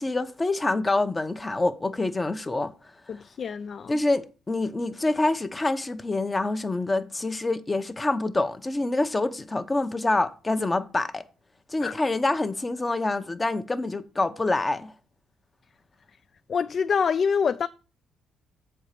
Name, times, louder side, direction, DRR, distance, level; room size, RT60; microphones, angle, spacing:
voice 1, 0.0-2.7 3.9-11.2 11.7-14.9, left 2 dB, 20° left, 0.7 m, -26 dB
voice 2, 3.1-3.9 11.8-11.9 16.5-17.7, left 6 dB, 50° left, 0.3 m, -26 dB
7.2 x 4.5 x 6.6 m
cardioid pair, 90°, 0 cm